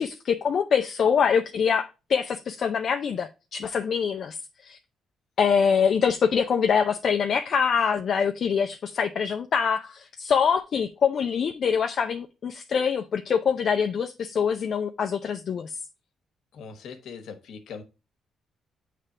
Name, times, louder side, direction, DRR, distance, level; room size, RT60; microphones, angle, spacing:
voice 1, 0.0-4.4 4.6-4.8 5.4-15.7, left 6 dB, 55° left, 0.5 m, -24 dB
voice 2, 16.5-17.8, left 6 dB, 75° left, 1.2 m, -41 dB
7.4 x 3.4 x 4.9 m
cardioid pair, 90°, 0 cm